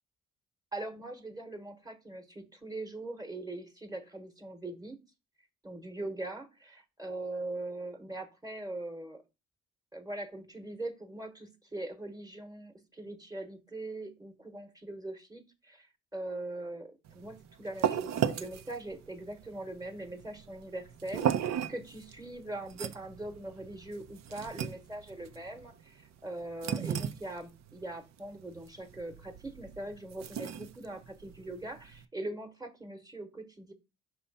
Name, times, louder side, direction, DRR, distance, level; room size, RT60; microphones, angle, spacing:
voice 1, 0.7-5.0 5.6-9.2 9.9-33.7, right 2 dB, 10° right, 8 dB, 1.1 m, -41 dB
sound 1, 17.1-32.0, right 9 dB, 65° right, 0.6 m, -37 dB
5.6 x 3.1 x 5.4 m, 0.27 s
cardioid pair, 90°, 30 cm